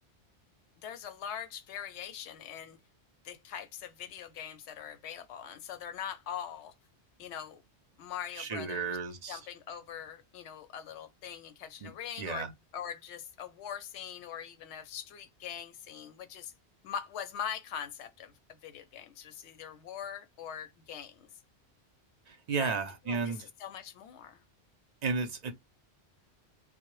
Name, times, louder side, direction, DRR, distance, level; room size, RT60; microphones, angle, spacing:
voice 1, 0.8-2.8 3.2-6.7 7.2-7.6 8.0-9.0 9.3-12.5 12.7-16.5 16.8-21.3 22.6-22.7 23.1-24.4, left 8 dB, 85° left, 0.9 m, -42 dB
voice 2, 8.4-9.4 11.8-11.9 12.2-12.5 22.3-23.4 25.0-25.5, right 4 dB, 50° right, 0.5 m, -33 dB
2.1 x 2.0 x 2.9 m
omnidirectional pair, 1.1 m